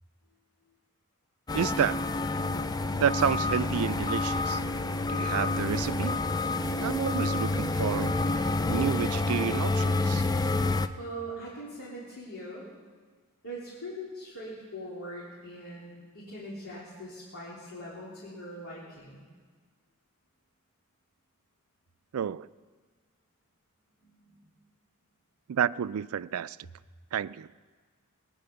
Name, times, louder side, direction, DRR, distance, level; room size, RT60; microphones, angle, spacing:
sound 1, 1.5-10.9, left 2 dB, 20° left, 0.4 m, -28 dB
voice 1, 1.5-2.0 3.0-4.6 5.1-6.2 6.8-8.2 8.7-10.2 22.1-22.5 25.5-26.6 27.1-27.5, right 8 dB, 80° right, 0.4 m, -30 dB
voice 2, 11.0-12.7 13.4-19.2 24.0-24.4, equal, 80° left, 3.5 m, -41 dB
20.0 x 9.9 x 6.8 m
head